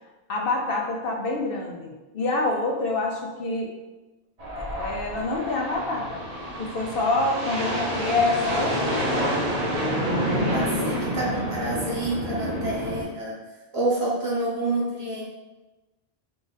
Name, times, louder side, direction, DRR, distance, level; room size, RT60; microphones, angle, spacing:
voice 1, 0.0-3.7 4.5-6.2 6.6-9.1 10.7-11.0, left 2 dB, 65° left, 0 dB, 0.8 m, -27 dB
sound 1, 4.4-13.0, equal, 40° right, 0.9 m, -28 dB
voice 2, 10.5-13.4 13.7-15.2, right 2 dB, 70° right, -6 dB, 1.5 m, -28 dB
4.8 x 2.5 x 3.9 m, 1.1 s
omnidirectional pair, 1.1 m